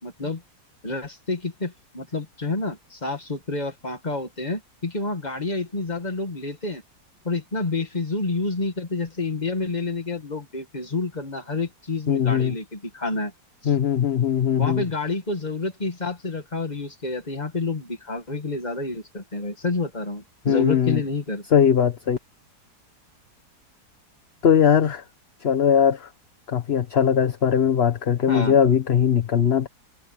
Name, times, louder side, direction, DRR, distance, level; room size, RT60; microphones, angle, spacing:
voice 1, 0.0-0.4 0.8-6.8 7.2-13.3 13.6-13.7 14.6-21.4 28.3-28.6, left 3 dB, 25° left, 2.2 m, -29 dB
voice 2, 12.1-12.5 13.6-14.8 20.4-21.0 21.5-22.2 24.4-25.0 25.4-26.1 26.5-29.7, left 8 dB, 45° left, 1.2 m, -20 dB
omnidirectional pair, 1.7 m